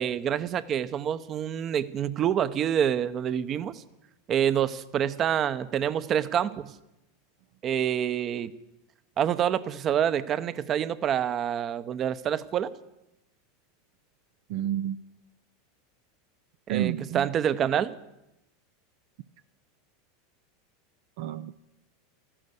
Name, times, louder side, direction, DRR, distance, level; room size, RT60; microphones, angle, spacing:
voice 1, 0.0-3.8 4.3-6.7 7.6-8.5 9.2-12.7 16.7-17.9, right 9 dB, 40° right, 15 dB, 0.9 m, -27 dB
voice 2, 14.5-15.0 16.7-17.3 21.2-21.5, right 12 dB, 65° right, 11 dB, 0.5 m, -29 dB
14.0 x 12.0 x 8.2 m, 0.88 s
hypercardioid pair, 100°, 0 cm